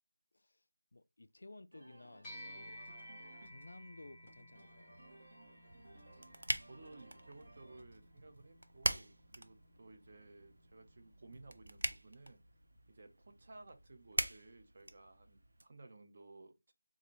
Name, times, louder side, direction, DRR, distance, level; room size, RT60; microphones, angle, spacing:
voice 1, 0.9-2.9 3.4-5.0, left 2 dB, 70° left, 0.3 m, -56 dB
sound 1, 1.7-11.1, right 2 dB, 65° right, 1.7 m, -62 dB
sound 2, 2.2-11.9, equal, 10° left, 0.6 m, -57 dB
sound 3, 5.7-15.6, right 1 dB, 80° right, 0.6 m, -43 dB
voice 2, 6.7-12.4 12.9-16.5, right 2 dB, 40° right, 0.7 m, -57 dB
3.8 x 2.6 x 3.0 m
figure-of-eight pair, 170°, 0 cm